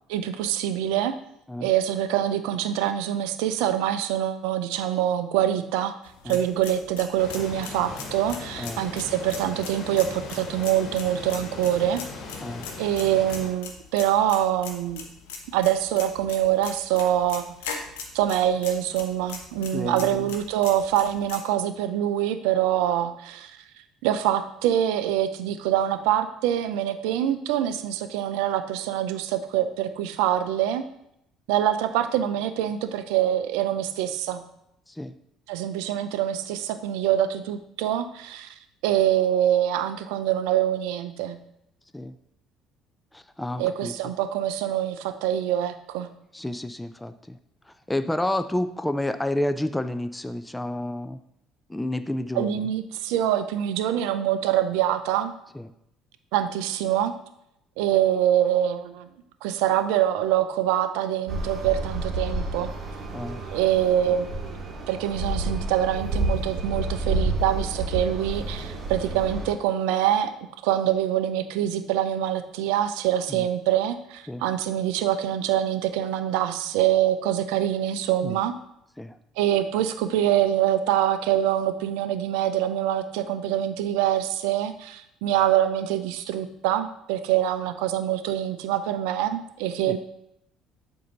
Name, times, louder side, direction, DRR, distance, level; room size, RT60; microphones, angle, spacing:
voice 1, 0.1-1.1 1.6-5.9 6.3-12.0 12.8-15.0 15.5-17.8 18.1-23.5 24.0-30.8 31.5-34.4 35.5-38.5 38.8-41.4 43.6-46.1 52.3-55.3 56.3-57.1 57.8-59.1 59.4-62.7 63.5-64.3 64.9-70.3 70.6-78.5 79.4-90.0, right 11 dB, 70° right, 11 dB, 0.4 m, -25 dB
sound 1, 6.1-21.4, left 5 dB, 75° left, 0.8 m, -41 dB
sound 2, 7.2-13.5, left 4 dB, 55° left, 1.2 m, -39 dB
voice 2, 19.7-20.3 34.9-35.2 41.9-42.1 43.1-43.9 46.3-47.4 47.7-51.2 51.7-52.7 55.5-55.7 63.1-63.4 73.3-73.5 74.3-74.4 78.2-78.4 79.0-79.2 89.9-90.0, left 1 dB, 10° left, 10 dB, 0.4 m, -30 dB
sound 3, 61.3-69.5, right 2 dB, 40° right, 1.2 m, -30 dB
7.5 x 2.7 x 5.3 m, 0.78 s
hypercardioid pair, 55°, 0 cm